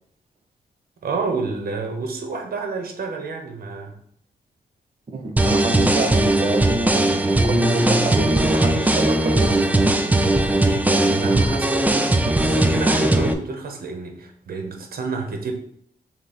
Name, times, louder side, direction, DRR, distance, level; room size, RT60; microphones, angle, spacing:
voice 1, 1.0-4.0 10.4-15.5, right 4 dB, 70° right, 4 dB, 0.8 m, -29 dB
voice 2, 5.1-9.9, right 2 dB, 35° right, 4 dB, 0.7 m, -27 dB
sound 1, 5.4-13.3, right 1 dB, 10° right, 0.3 m, -19 dB
6.0 x 2.1 x 4.0 m, 0.69 s
wide cardioid pair, 145°, 16 cm